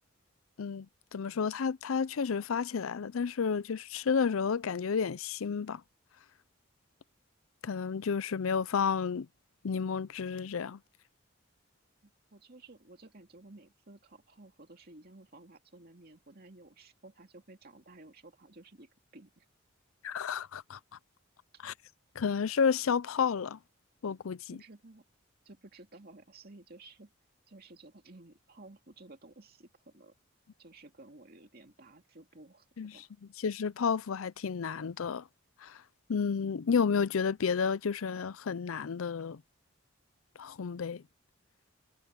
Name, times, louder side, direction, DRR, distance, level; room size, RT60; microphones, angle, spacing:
voice 1, 1.1-5.8 7.6-9.3 9.6-10.8 20.0-20.8 21.6-21.7 22.2-23.6 24.0-24.6 32.8-32.9 33.4-35.2 35.6-35.8 36.1-39.4 40.4-41.0, left 6 dB, 90° left, 0.5 m, -31 dB
voice 2, 12.0-19.5 24.5-25.0 25.4-27.1 27.5-30.1 30.6-32.7 32.9-33.1, right 2 dB, 50° right, 2.5 m, -54 dB
head